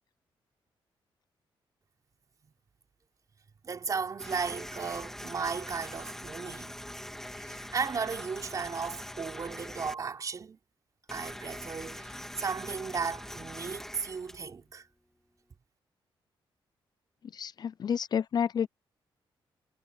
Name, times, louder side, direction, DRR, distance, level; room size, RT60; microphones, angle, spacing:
voice 1, 3.6-6.8 7.4-10.6 11.1-14.9, right 5 dB, 40° right, 4.3 m, -35 dB
sound 1, 4.2-9.9 11.1-14.7, left 1 dB, 5° left, 1.9 m, -43 dB
voice 2, 17.3-18.7, left 7 dB, 50° left, 0.5 m, -30 dB
wide cardioid pair, 135°, 9 cm